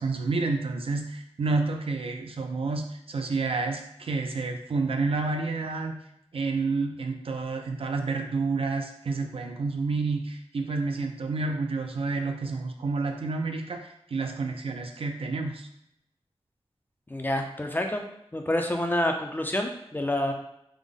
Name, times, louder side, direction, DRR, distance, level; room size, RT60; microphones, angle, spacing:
voice 1, 0.0-6.0 6.3-15.7, right 3 dB, 65° right, 5 dB, 0.4 m, -29 dB
voice 2, 17.1-18.0 18.3-20.3, left 1 dB, 20° left, 4 dB, 0.4 m, -28 dB
3.4 x 2.0 x 3.6 m, 0.78 s
wide cardioid pair, 85°, 10 cm